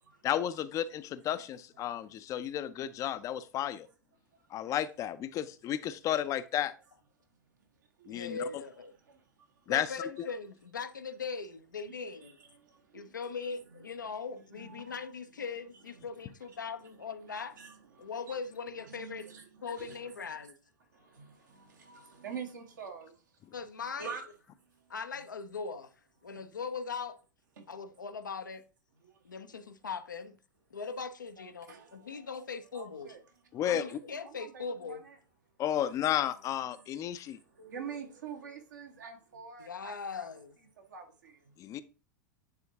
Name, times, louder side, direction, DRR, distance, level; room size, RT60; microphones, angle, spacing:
voice 1, 0.2-3.9 4.5-6.7 8.1-8.6 9.7-10.3 33.5-34.0 35.6-37.4 41.6-41.8, left 11 dB, 35° left, 0.5 m, -33 dB
voice 2, 8.1-8.9 9.7-12.4 12.9-17.6 18.0-19.3 19.6-20.5 23.5-24.1 24.9-25.9 26.2-27.2 27.7-28.6 29.2-30.4 30.7-33.2 33.6-35.0 39.6-40.6, left 5 dB, 80° left, 0.6 m, -40 dB
voice 3, 12.2-13.2 14.5-15.1 16.0-16.1 17.3-18.3 18.8-20.4 20.9-23.2 24.0-24.2 27.6-27.7 29.0-29.2 31.4-32.2 32.7-33.2 33.7-35.2 37.1-40.3 40.8-41.6, right 6 dB, 70° right, 1.5 m, -47 dB
9.7 x 3.5 x 2.8 m
figure-of-eight pair, 90°, 10 cm